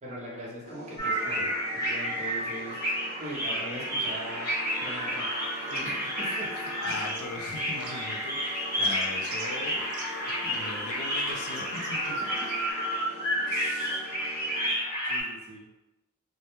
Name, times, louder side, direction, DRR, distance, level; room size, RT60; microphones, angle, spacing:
voice 1, 0.0-4.5 4.8-5.3 5.6-6.7 10.2-10.5 14.7-15.7, right 1 dB, 30° right, -4 dB, 0.6 m, -41 dB
sound 1, 0.6-14.7, equal, 45° left, 0.8 m, -43 dB
sound 2, 1.0-15.2, equal, 15° left, 1.0 m, -31 dB
sound 3, 5.4-6.0 6.3-8.3 8.6-12.7, right 5 dB, 80° right, 0.4 m, -48 dB
voice 2, 6.8-10.0 10.5-12.2 13.5-14.0, left 3 dB, 70° left, 2 dB, 0.4 m, -39 dB
2.1 x 2.1 x 2.9 m, 1.0 s
head